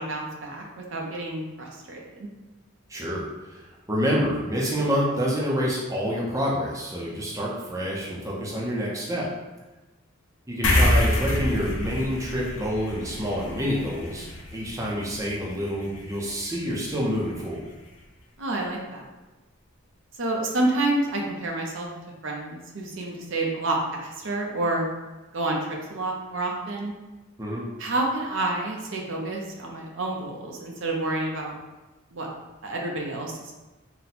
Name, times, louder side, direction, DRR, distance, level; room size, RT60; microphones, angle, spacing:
voice 1, 0.0-2.3 18.4-19.0 20.2-21.9 22.2-24.8 25.3-26.9 27.8-31.6 32.1-32.3 32.6-33.5, right 2 dB, 60° right, -1 dB, 0.6 m, -29 dB
voice 2, 2.9-9.3 10.5-17.7 27.4-27.6, equal, 15° right, -5 dB, 0.6 m, -28 dB
sound 1, 10.6-17.4, left 1 dB, 65° left, 0.7 m, -28 dB
4.2 x 2.2 x 4.1 m, 1.1 s
head